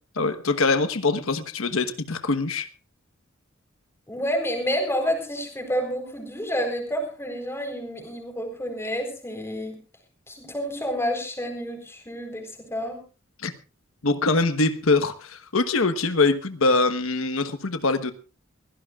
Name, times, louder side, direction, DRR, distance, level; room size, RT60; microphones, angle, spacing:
voice 1, 0.2-2.7 13.4-13.5 14.0-18.1, left 3 dB, 85° left, 1.2 m, -23 dB
voice 2, 4.1-9.8 10.3-13.0, equal, 15° left, 4.1 m, -29 dB
23.0 x 16.5 x 2.4 m
head